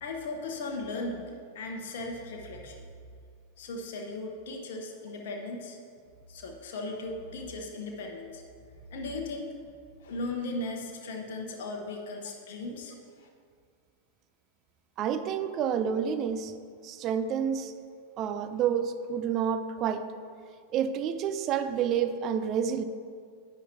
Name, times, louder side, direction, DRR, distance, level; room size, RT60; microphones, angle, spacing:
voice 1, 0.0-2.9 3.6-5.8 6.3-8.4 8.9-9.5 10.0-13.3, left 2 dB, 55° left, 1 dB, 1.0 m, -37 dB
voice 2, 15.0-16.5 16.8-17.7 18.2-20.1 20.7-22.8, right 8 dB, 35° right, 11 dB, 0.5 m, -29 dB
10.0 x 9.9 x 2.8 m, 2.2 s
figure-of-eight pair, 90°, 0 cm